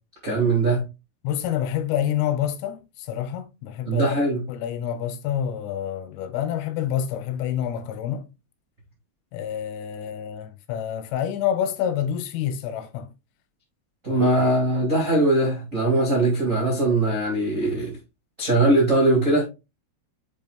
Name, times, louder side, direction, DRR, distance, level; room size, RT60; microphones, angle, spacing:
voice 1, 0.2-0.8 3.8-4.4 14.0-18.0 18.4-19.4, right 2 dB, 80° right, 0.7 m, -21 dB
voice 2, 1.2-8.3 9.3-13.1 14.1-14.4, left 10 dB, 85° left, 3.4 m, -28 dB
7.4 x 5.6 x 2.3 m
omnidirectional pair, 5.7 m